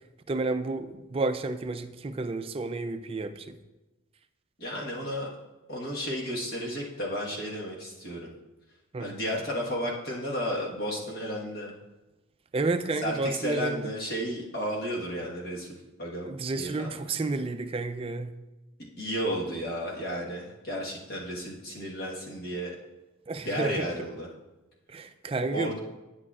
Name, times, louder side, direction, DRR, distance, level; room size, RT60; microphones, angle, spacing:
voice 1, 0.3-3.6 8.9-9.1 12.5-13.9 16.3-18.4 23.3-23.9 24.9-25.7, right 3 dB, 30° right, 10 dB, 0.3 m, -31 dB
voice 2, 4.6-5.3 5.7-8.3 9.0-11.7 13.0-17.3 19.0-22.7 23.4-24.3 25.5-25.8, equal, 50° left, -3 dB, 1.3 m, -33 dB
9.6 x 8.5 x 2.4 m, 1.1 s
head